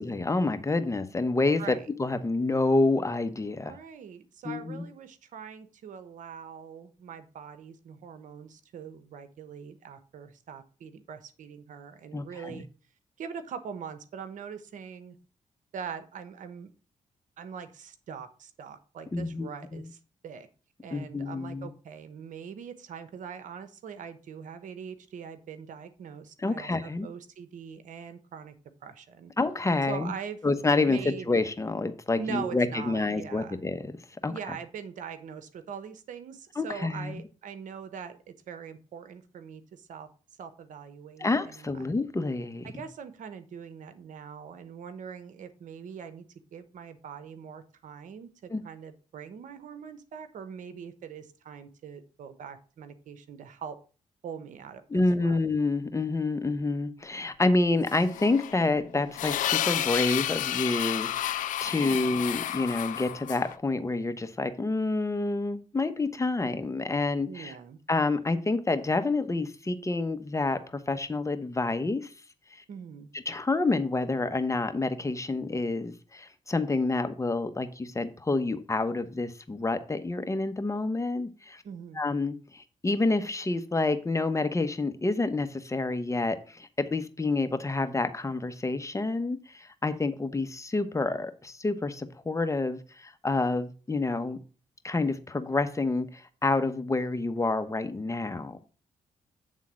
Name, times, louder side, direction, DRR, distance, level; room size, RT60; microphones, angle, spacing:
voice 1, 0.0-3.7 4.4-4.8 12.1-12.6 19.1-19.9 20.9-21.7 26.4-27.1 29.4-30.1 30.4-33.8 34.2-34.3 36.6-37.2 41.2-42.7 48.5-48.6 54.9-67.5 67.9-70.6 70.9-72.1 73.3-81.6 82.0-94.4 94.8-98.6, left 3 dB, 25° left, 1.0 m, -28 dB
voice 2, 3.6-12.7 13.2-15.2 15.7-16.7 17.4-20.5 20.8-28.5 28.8-29.3 29.9-30.4 30.9-31.3 32.2-33.6 34.3-40.1 40.4-41.8 42.6-46.2 46.5-53.8 54.2-55.4 61.8-62.2 67.3-67.8 72.7-73.1 81.6-82.1, right 7 dB, 75° right, 1.1 m, -42 dB
sound 1, 57.9-63.5, left 12 dB, 85° left, 0.5 m, -31 dB
8.5 x 3.8 x 6.3 m
cardioid pair, 70°, 13 cm